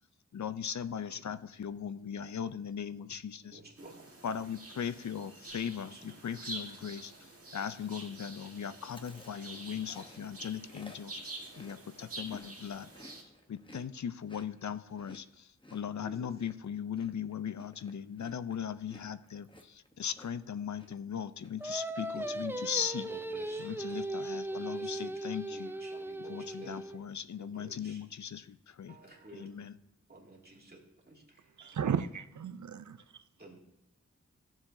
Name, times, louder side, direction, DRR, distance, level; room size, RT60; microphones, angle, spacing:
voice 1, 0.3-3.6 4.2-11.2 11.6-12.9 13.5-23.1 23.6-25.7 26.3-29.0 29.3-29.8, left 8 dB, 65° left, 0.5 m, -38 dB
voice 2, 3.5-4.2 5.8-7.0 16.0-16.3 22.1-25.2 25.5-26.8 27.4-28.0 28.9-29.5 30.1-30.8 31.0-31.8 33.4-33.6, right 2 dB, 30° right, 2.3 m, -53 dB
sound 1, 3.8-13.2, right 2 dB, 50° right, 1.7 m, -47 dB
Chewing mastication, 8.8-12.5 12.8-20.5 20.8-21.1 21.4-22.1, left 1 dB, 15° left, 0.9 m, -55 dB
Singing, 21.6-27.0, right 1 dB, 10° right, 0.4 m, -38 dB
voice 3, 31.6-33.0, right 7 dB, 70° right, 0.5 m, -34 dB
14.5 x 7.2 x 2.6 m
wide cardioid pair, 80°, 30 cm